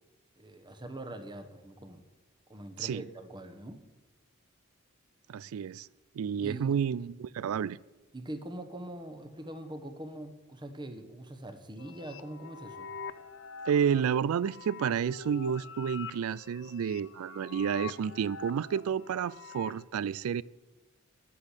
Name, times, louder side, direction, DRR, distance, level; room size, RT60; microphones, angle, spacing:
voice 1, 0.4-2.0 2.5-3.8 6.4-6.8 8.1-12.9, right 1 dB, 20° right, 1.1 m, -43 dB
voice 2, 5.3-5.9 6.2-7.8 13.7-20.4, right 7 dB, 80° right, 0.3 m, -30 dB
sound 1, 11.8-19.8, left 5 dB, 60° left, 0.7 m, -45 dB
10.0 x 8.5 x 8.2 m
head